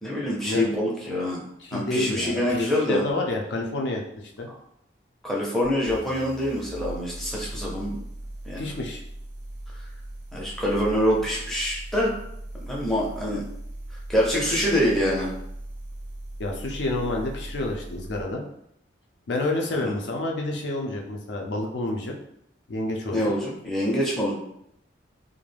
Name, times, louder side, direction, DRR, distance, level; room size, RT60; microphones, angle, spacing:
voice 1, 0.0-1.4 1.7-3.0 5.2-7.9 8.4-8.7 10.3-12.1 12.6-13.4 13.9-15.3 19.8-19.9 23.1-24.3, equal, ahead, -5 dB, 0.5 m, -25 dB
voice 2, 1.6-4.5 8.5-9.0 16.4-18.4 19.3-22.1 22.7-23.3, left 2 dB, 75° left, 1 dB, 0.4 m, -29 dB
sound 1, 5.6-18.3, right 1 dB, 85° right, 0.7 m, -39 dB
2.4 x 2.1 x 3.2 m, 0.75 s
head